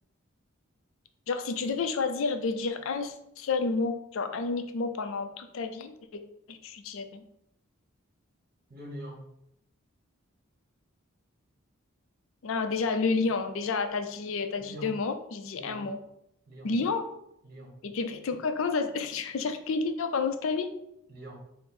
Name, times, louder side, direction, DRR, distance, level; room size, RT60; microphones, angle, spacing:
voice 1, 1.3-6.2 6.5-7.2 12.4-16.0 16.6-17.0 17.8-20.7, left 4 dB, 65° left, 8 dB, 0.4 m, -30 dB
voice 2, 8.7-9.3 14.6-14.9 15.5-15.9 16.5-16.7 17.4-17.8 21.1-21.4, equal, 45° right, -1 dB, 1.2 m, -43 dB
4.7 x 2.0 x 4.3 m, 0.77 s
head